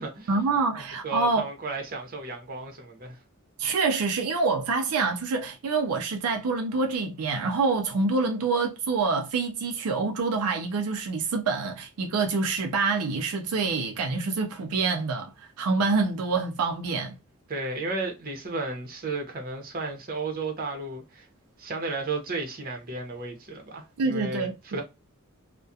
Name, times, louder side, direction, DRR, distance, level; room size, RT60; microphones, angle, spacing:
voice 1, 0.3-1.4 3.6-17.1 24.0-24.5, right 4 dB, 80° right, 0.4 m, -26 dB
voice 2, 1.0-3.2 17.5-21.3 21.6-24.8, right 3 dB, 40° right, 0.8 m, -33 dB
2.3 x 2.1 x 2.6 m
head